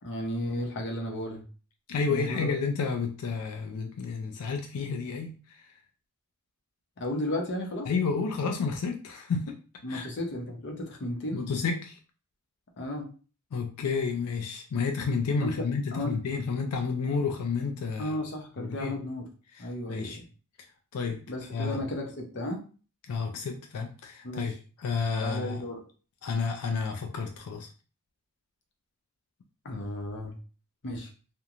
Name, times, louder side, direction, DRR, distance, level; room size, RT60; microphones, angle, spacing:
voice 1, 0.0-1.4 2.1-2.5 7.0-7.9 9.8-11.4 12.8-13.1 15.4-16.1 18.0-19.3 19.6-20.2 21.3-22.6 24.2-24.5 25.2-25.8 29.6-30.4 30.8-31.1, left 1 dB, 55° left, 2 dB, 0.6 m, -34 dB
voice 2, 1.9-5.7 7.9-9.6 9.9-10.1 11.3-12.0 13.5-18.2 18.6-18.9 19.5-20.2 20.9-21.2 21.5-21.8 23.1-24.5 24.8-25.6 26.2-27.7, left 5 dB, 90° left, 4 dB, 0.4 m, -31 dB
2.9 x 2.1 x 2.4 m, 0.37 s
head